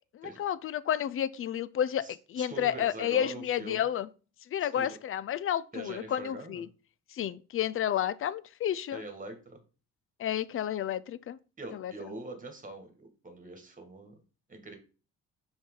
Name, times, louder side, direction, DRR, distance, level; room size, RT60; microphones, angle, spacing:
voice 1, 0.1-4.1 4.5-6.7 7.1-9.0 10.2-11.4 11.7-11.9, left 10 dB, 45° left, 0.4 m, -31 dB
voice 2, 2.0-3.8 4.6-5.0 5.7-6.6 8.9-9.6 11.6-14.2 14.5-14.8, right 2 dB, 25° right, 1.8 m, -43 dB
5.7 x 4.5 x 3.8 m
cardioid pair, 90°, 30 cm